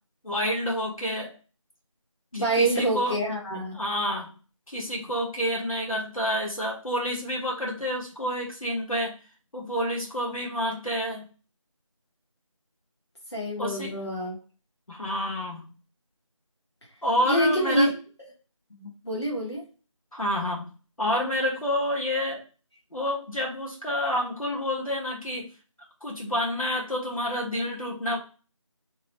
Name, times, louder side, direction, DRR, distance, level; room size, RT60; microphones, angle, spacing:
voice 1, 0.2-1.3 2.3-3.2 3.7-4.3 4.7-9.2 9.5-11.3 13.6-14.0 14.9-15.7 17.0-17.9 20.1-20.7 21.0-22.4 22.9-25.5 26.0-28.2, equal, 90° left, -2 dB, 1.2 m, -28 dB
voice 2, 2.3-3.8 13.3-14.4 17.2-17.9 18.7-19.7, right 1 dB, 55° left, -3 dB, 1.0 m, -26 dB
2.9 x 2.1 x 2.9 m, 0.35 s
figure-of-eight pair, 175°, 17 cm